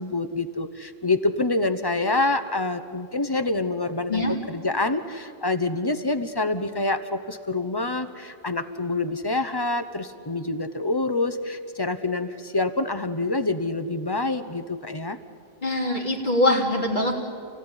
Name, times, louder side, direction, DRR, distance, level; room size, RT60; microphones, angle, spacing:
voice 1, 0.0-15.2, left 2 dB, 25° left, 10 dB, 0.9 m, -26 dB
voice 2, 15.6-17.1, left 1 dB, 45° left, -2 dB, 3.1 m, -23 dB
29.0 x 16.0 x 9.9 m, 2.3 s
omnidirectional pair, 1.1 m